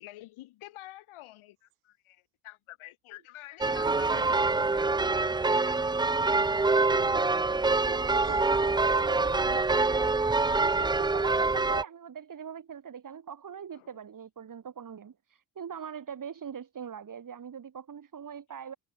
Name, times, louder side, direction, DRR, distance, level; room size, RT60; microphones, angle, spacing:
voice 1, 0.0-5.9 13.7-14.0, left 16 dB, 75° left, 5.9 m, -49 dB
sound 1, 1.7-1.8 3.8-4.8 6.6-6.7 8.2-9.0, right 20 dB, 70° right, 1.2 m, -48 dB
sound 2, 3.6-11.8, right 3 dB, 10° right, 0.5 m, -25 dB
voice 2, 6.9-7.4 7.9-18.8, right 7 dB, 40° right, 1.9 m, -42 dB
hypercardioid pair, 50°, 50 cm